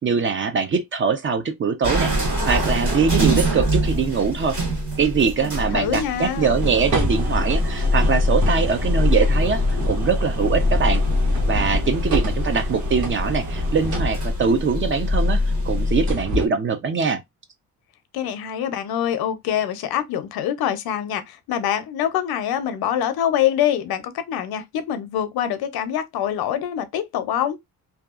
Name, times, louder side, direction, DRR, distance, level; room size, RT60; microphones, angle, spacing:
voice 1, 0.0-2.1 2.4-4.6 5.0-11.0 11.5-17.2, right 5 dB, 35° right, 0.5 m, -22 dB
sound 1, 1.8-16.1, left 1 dB, 55° right, 1.6 m, -23 dB
voice 2, 5.4-6.5 18.1-27.6, left 10 dB, 85° left, 0.6 m, -25 dB
sound 2, 6.6-14.5 16.1-16.5, equal, 85° right, 1.1 m, -28 dB
2.7 x 2.3 x 2.3 m
cardioid pair, 115°, 36 cm